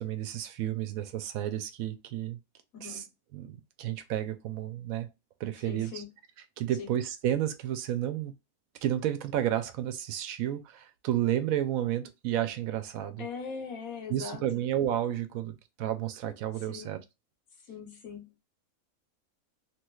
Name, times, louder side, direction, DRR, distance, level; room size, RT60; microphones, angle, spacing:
voice 1, 0.0-2.4 2.8-3.0 3.3-5.1 5.4-6.0 6.6-8.3 8.8-13.3 14.1-17.0, right 11 dB, 80° right, 1.0 m, -31 dB
voice 2, 2.7-3.1 5.6-6.1 6.8-7.0 13.2-14.4 16.6-17.0 17.7-18.4, left 5 dB, 75° left, 1.4 m, -41 dB
3.1 x 3.0 x 2.3 m
omnidirectional pair, 1.5 m